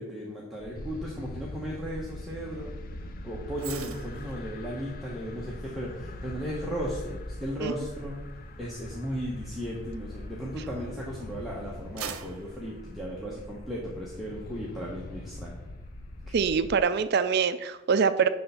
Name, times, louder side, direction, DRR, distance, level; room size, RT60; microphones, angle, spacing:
voice 1, 0.0-2.8 3.2-8.2 8.6-15.5 16.3-16.4, equal, ahead, -5 dB, 0.9 m, -36 dB
sound 1, 0.6-16.8, equal, 85° left, 1.2 m, -44 dB
sound 2, 0.7-16.8, left 2 dB, 40° left, 0.4 m, -45 dB
sound 3, 3.6-11.0 11.4-13.8 14.2-14.4, right 7 dB, 75° right, 0.7 m, -47 dB
voice 2, 16.3-18.3, right 6 dB, 50° right, 11 dB, 0.3 m, -24 dB
9.9 x 3.4 x 5.6 m, 1.0 s
head